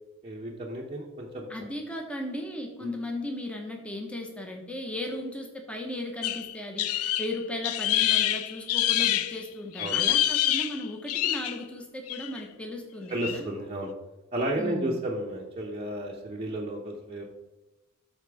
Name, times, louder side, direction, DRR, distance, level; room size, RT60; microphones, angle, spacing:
voice 1, 0.2-1.5 2.8-2.9 9.8-10.0 13.1-13.9 14.3-17.2, right 1 dB, 25° right, -3 dB, 0.9 m, -32 dB
voice 2, 1.5-13.5 14.6-15.0, left 1 dB, 5° left, 2 dB, 1.1 m, -36 dB
sound 1, 6.2-9.4 9.8-11.6 12.1-12.4 13.2-13.4, left 12 dB, 80° left, 0.4 m, -26 dB
12.5 x 4.4 x 3.5 m, 1.1 s
head